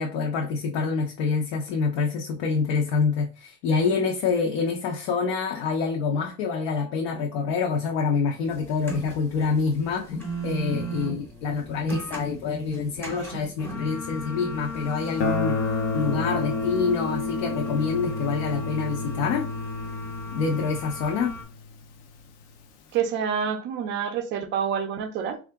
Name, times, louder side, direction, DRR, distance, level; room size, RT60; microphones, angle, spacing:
voice 1, 0.0-15.5 15.9-19.5 20.3-21.3, left 5 dB, 75° left, 0.8 m, -26 dB
sound 1, 8.5-21.4, left 1 dB, 5° left, 0.6 m, -36 dB
Guitar, 15.2-21.9, left 3 dB, 45° left, 0.5 m, -30 dB
voice 2, 22.9-25.4, right 7 dB, 35° right, 0.4 m, -27 dB
3.7 x 2.4 x 3.4 m
cardioid pair, 175°, 37 cm